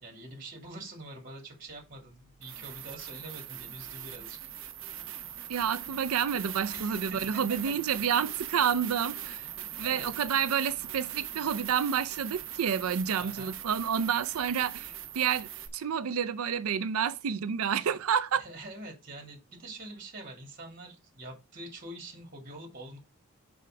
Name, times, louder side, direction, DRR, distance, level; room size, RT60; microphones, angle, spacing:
voice 1, 0.0-4.4 6.7-7.7 9.4-9.5 9.8-10.1 13.2-13.6 18.3-23.0, right 2 dB, 40° right, 2.6 m, -45 dB
sound 1, 1.7-1.8 2.4-15.7, right 10 dB, 60° right, 1.0 m, -41 dB
voice 2, 5.5-9.4 9.8-18.4, right 7 dB, 80° right, 0.5 m, -29 dB
5.7 x 5.0 x 5.0 m
head